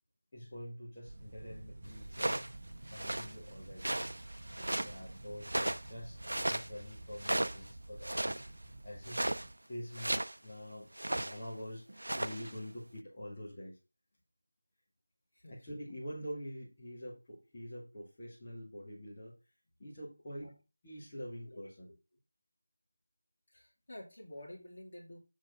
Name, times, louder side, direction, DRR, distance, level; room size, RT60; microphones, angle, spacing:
voice 1, 0.3-2.4 2.9-3.9 4.4-8.5 8.8-9.2 9.7-13.8 15.5-19.3 19.8-20.6 20.8-21.9, equal, 15° left, -9 dB, 1.7 m, -46 dB
sound 1, 1.0-9.5, right 1 dB, 25° right, 0.8 m, -50 dB
sound 2, 2.1-2.5 2.9-3.3 3.8-5.0 5.4-5.9 6.2-6.7 7.2-7.7 8.0-8.5 9.0-9.5 9.9-10.4 11.0-11.4 11.9-12.5, right 1 dB, 80° right, 0.7 m, -35 dB
voice 2, 15.3-15.7 20.4-20.5 21.4-21.7 23.5-25.2, left 1 dB, 35° left, -2 dB, 2.6 m, -50 dB
7.4 x 4.3 x 5.1 m, 0.28 s
figure-of-eight pair, 180°, 0 cm